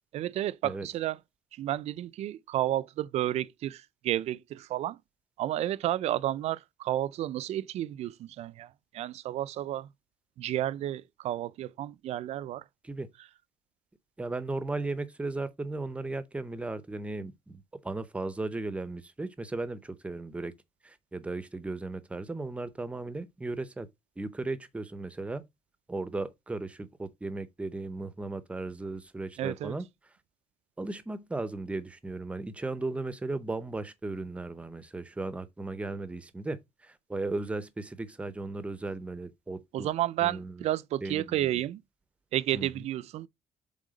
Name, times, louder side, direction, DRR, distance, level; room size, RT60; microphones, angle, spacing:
voice 1, 0.1-1.2 1.5-5.0 5.4-9.9 10.4-12.6 29.4-29.7 39.7-41.8 42.3-43.3, right 13 dB, 60° right, 0.4 m, -31 dB
voice 2, 14.2-20.5 20.8-23.9 24.2-25.4 25.9-29.9 30.8-39.9 40.2-40.7 41.0-41.5 42.5-42.9, right 2 dB, 10° right, 0.7 m, -36 dB
7.6 x 3.6 x 5.0 m
cardioid pair, 165°, 13 cm